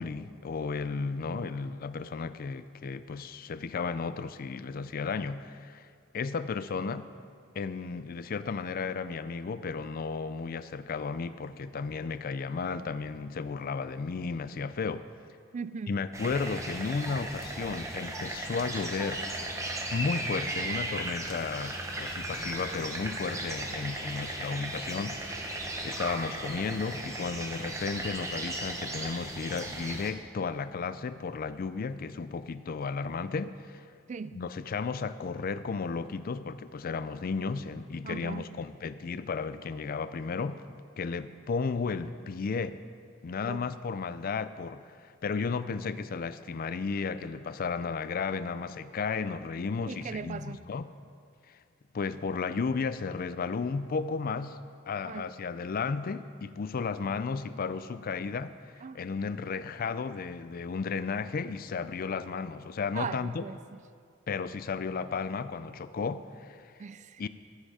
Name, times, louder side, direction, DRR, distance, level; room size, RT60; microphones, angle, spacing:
voice 1, 0.0-5.9 6.1-7.1 7.5-15.0 15.9-19.3 19.9-33.8 34.3-40.6 41.0-42.8 43.2-44.8 45.2-50.9 51.9-54.6 54.9-58.5 58.9-63.4 64.3-66.7 67.2-67.3, left 5 dB, 50° left, 13 dB, 0.4 m, -34 dB
voice 2, 15.5-16.0 34.1-34.4 38.0-38.5 43.4-43.6 49.8-50.6 55.0-55.3 58.8-59.0 62.9-63.8 66.8-67.3, right 5 dB, 40° right, 15 dB, 0.3 m, -39 dB
sound 1, 16.1-30.1, right 1 dB, 15° right, 0.9 m, -36 dB
13.5 x 7.8 x 4.9 m, 2.2 s
head